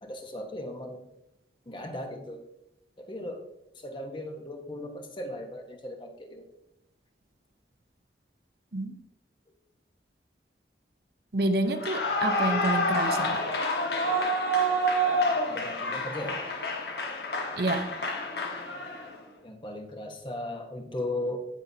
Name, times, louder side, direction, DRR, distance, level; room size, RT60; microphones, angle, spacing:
voice 1, 0.0-1.1 1.7-2.4 3.0-3.4 3.8-6.4 15.4-16.4 19.4-21.5, left 1 dB, 25° left, 3 dB, 1.1 m, -37 dB
voice 2, 11.3-13.4 17.6-17.9, right 2 dB, 60° right, 7 dB, 0.8 m, -28 dB
Clapping / Cheering / Applause, 11.7-19.1, equal, 65° left, 1.4 m, -28 dB
16.5 x 5.7 x 2.8 m, 0.86 s
head